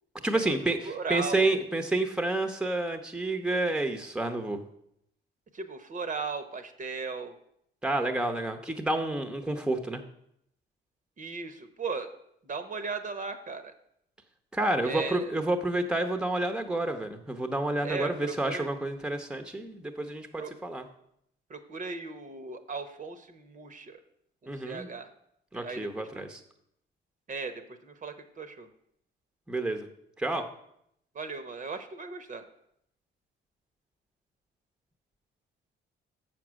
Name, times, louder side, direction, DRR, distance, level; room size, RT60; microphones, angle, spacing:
voice 1, 0.2-0.8 1.1-4.6 7.8-10.0 14.5-20.8 24.5-24.9 25.5-26.3 29.5-29.9 30.2-30.4, right 2 dB, 5° right, 6 dB, 0.8 m, -29 dB
voice 2, 0.8-1.7 5.5-7.3 11.2-12.1 12.4-13.7 14.8-15.3 17.8-18.7 20.4-20.5 21.5-24.0 24.4-25.1 25.5-26.3 27.3-28.7 31.1-32.4, right 4 dB, 40° right, 9 dB, 0.9 m, -37 dB
7.2 x 6.0 x 6.2 m, 0.74 s
cardioid pair, 90°, 20 cm